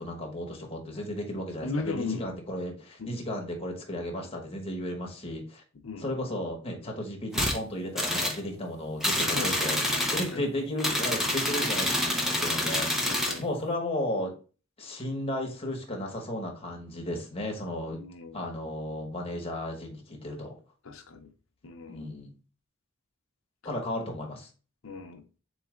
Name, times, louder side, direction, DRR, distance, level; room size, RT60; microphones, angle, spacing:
voice 1, 0.0-5.6 6.0-9.8 10.1-14.3 14.8-18.0 18.3-20.5 21.9-22.3 23.6-24.5, left 1 dB, 30° left, 1.1 m, -34 dB
voice 2, 1.6-2.3 3.0-3.2 5.8-6.1 9.2-9.5 10.3-10.5 13.0-13.5 18.0-18.5 20.9-21.3 21.6-22.2 24.8-25.2, left 3 dB, 75° left, 0.7 m, -36 dB
sound 1, 7.3-7.6 8.0-8.4 9.0-10.3 10.8-13.4, left 1 dB, ahead, 0.7 m, -27 dB
4.0 x 3.2 x 3.6 m
head